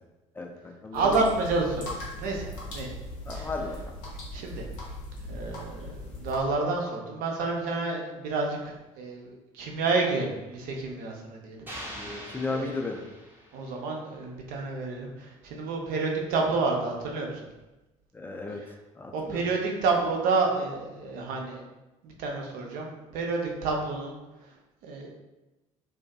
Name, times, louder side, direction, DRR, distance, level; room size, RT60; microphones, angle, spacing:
voice 1, 0.4-1.2 3.3-3.8 11.9-13.0 18.1-18.6 19.0-19.4, left 3 dB, 10° left, 2 dB, 0.4 m, -34 dB
sound 1, 0.9-6.4, left 1 dB, 65° left, 0.8 m, -39 dB
voice 2, 0.9-1.9 2.2-2.9 3.3-3.5 4.3-4.6 5.3-11.6 11.9-12.2 12.5-12.8 13.5-17.4 18.6-18.7 19.1-21.6 22.0-24.2 24.8-25.2, right 3 dB, 55° right, 0 dB, 0.5 m, -29 dB
sound 2, 11.7-13.8, equal, 10° right, 0.7 m, -42 dB
2.5 x 2.3 x 2.3 m, 1.0 s
figure-of-eight pair, 55°, 17 cm